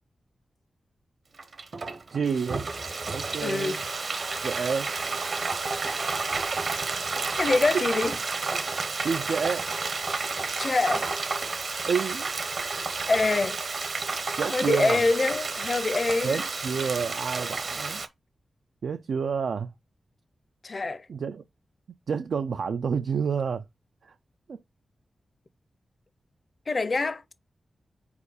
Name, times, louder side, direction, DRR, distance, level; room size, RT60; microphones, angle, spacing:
Frying (food), 1.4-18.1, right 4 dB, 50° right, 0.9 m, -31 dB
voice 1, 2.1-2.7 3.1-3.8 4.4-4.9 6.0-6.5 7.7-7.8 9.0-9.7 11.9-12.5 14.4-15.0 16.2-18.0 18.8-19.7 21.1-21.4 22.1-23.7 24.0-24.2 24.5-24.6, right 6 dB, 75° right, 0.4 m, -29 dB
voice 2, 3.4-3.8 7.4-8.2 10.6-11.1 13.1-13.6 14.5-16.4 20.6-21.1 26.7-27.3, left 3 dB, 35° left, 0.6 m, -25 dB
4.8 x 4.6 x 4.9 m
wide cardioid pair, 170°, 0 cm